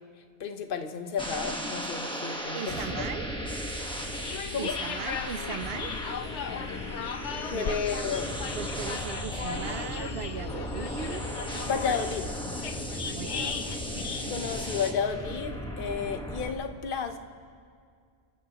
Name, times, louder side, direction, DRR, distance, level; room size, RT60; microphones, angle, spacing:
voice 1, 0.4-3.0 4.5-4.7 7.4-8.3 11.7-12.3 14.3-17.2, left 6 dB, 50° left, 7 dB, 1.1 m, -32 dB
sound 1, 1.2-16.5, equal, 5° left, 1.2 m, -36 dB
voice 2, 2.5-3.3 4.6-5.9 7.5-7.8 8.5-11.2 13.0-13.6, right 9 dB, 65° right, 13 dB, 0.8 m, -38 dB
sound 2, 4.0-14.8, left 7 dB, 80° left, 1.1 m, -37 dB
30.0 x 14.0 x 3.0 m, 2.1 s
omnidirectional pair, 1.2 m